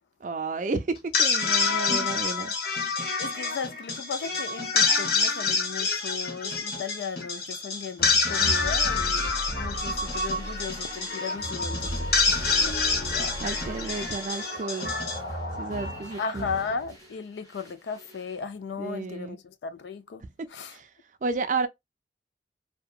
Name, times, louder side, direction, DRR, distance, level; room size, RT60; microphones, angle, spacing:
voice 1, 0.2-2.5 13.4-14.9 15.5-16.5 18.8-19.4 20.2-20.3 20.7-20.9 21.2-21.7, right 3 dB, 45° right, 0.4 m, -32 dB
sound 1, 1.0-16.2, left 4 dB, 60° left, 0.9 m, -27 dB
voice 2, 3.2-12.2 12.5-12.8 13.1-13.4 16.2-20.2 20.5-20.7, left 5 dB, 80° left, 0.4 m, -36 dB
sound 2, 8.0-17.1 17.5-18.3, right 1 dB, 20° left, 1.0 m, -37 dB
2.8 x 2.2 x 2.3 m
head